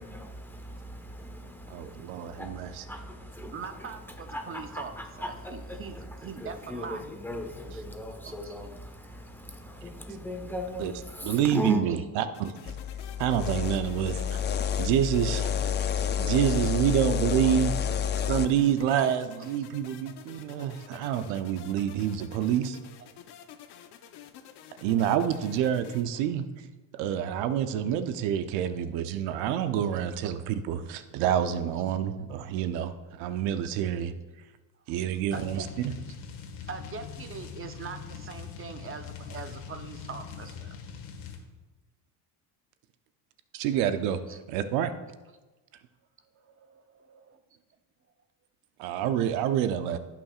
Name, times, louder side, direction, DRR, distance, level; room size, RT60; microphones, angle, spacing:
voice 1, 0.0-11.8, equal, 5° left, 1.2 m, -38 dB
voice 2, 1.7-2.8 10.8-10.9 11.2-12.5 13.2-14.4 14.8-15.6 16.2-17.7 18.3-22.8 24.8-26.5 26.9-34.1 34.9-35.6 43.5-44.2 44.5-44.9 48.8-50.0, right 10 dB, 85° right, 0.7 m, -27 dB
voice 3, 3.5-7.0 8.2-8.5 13.7-13.9 15.4-15.5 16.2-16.4 16.8-17.0 17.4-17.6 17.8-18.0 19.0-19.5 28.8-28.9 30.2-30.3 34.9-35.0 35.3-35.8 36.7-40.8 44.3-44.4 46.3-47.3, right 5 dB, 30° right, 0.7 m, -42 dB
sound 1, 12.3-26.0, left 9 dB, 60° left, 0.9 m, -49 dB
sound 2, 12.7-18.5, left 9 dB, 25° left, 0.4 m, -29 dB
sound 3, 35.3-41.4, left 6 dB, 80° left, 1.7 m, -42 dB
17.0 x 5.9 x 2.4 m
cardioid pair, 110°, 45 cm